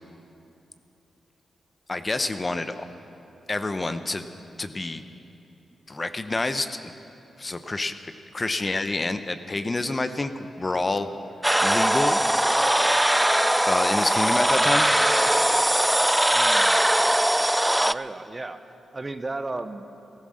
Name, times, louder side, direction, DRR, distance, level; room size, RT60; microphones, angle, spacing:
voice 1, 1.9-2.9 3.5-4.2 4.6-5.0 5.9-6.9 7.4-11.1 11.6-12.2 13.7-14.9, left 2 dB, 35° left, 10 dB, 0.8 m, -28 dB
sound 1, 11.4-17.9, right 1 dB, 10° right, 0.3 m, -21 dB
voice 2, 16.3-16.8 17.8-18.6 18.9-19.9, right 2 dB, 30° right, 10 dB, 0.8 m, -34 dB
15.0 x 14.0 x 6.5 m, 2.8 s
cardioid pair, 55°, 0 cm